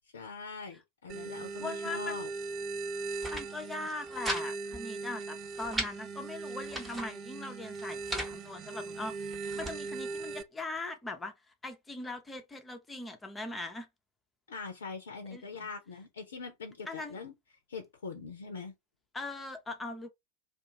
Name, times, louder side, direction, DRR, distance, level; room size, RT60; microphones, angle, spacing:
voice 1, 0.1-2.3 14.5-17.3 17.7-18.7, left 4 dB, 65° left, 0.5 m, -42 dB
sound 1, 1.1-10.4, right 4 dB, 35° right, 0.4 m, -39 dB
voice 2, 1.6-2.2 3.3-11.3 11.6-13.9 15.3-15.7 16.9-17.2 19.1-20.1, left 2 dB, 10° left, 0.6 m, -40 dB
sound 2, 3.0-3.5 3.8-4.4 4.7-4.8 5.2-5.9 6.5-7.1 7.7-8.3 9.0-9.8, equal, 10° right, 0.9 m, -38 dB
2.4 x 2.3 x 2.9 m
figure-of-eight pair, 90°, 0 cm